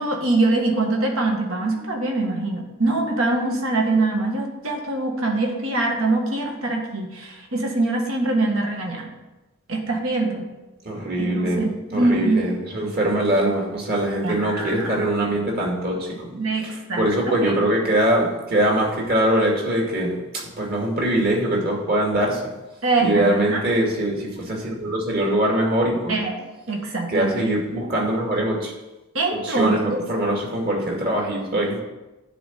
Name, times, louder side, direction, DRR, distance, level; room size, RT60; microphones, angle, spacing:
voice 1, 0.0-9.1 9.7-10.4 11.2-12.5 14.2-15.1 16.3-17.5 22.8-23.6 26.1-27.3 29.1-30.0, right 2 dB, 70° right, 1 dB, 1.8 m, -23 dB
voice 2, 10.8-16.2 16.6-22.4 23.0-26.2 27.1-28.7 29.3-31.8, right 1 dB, 45° right, -2 dB, 2.4 m, -22 dB
10.0 x 4.1 x 7.5 m, 1.0 s
head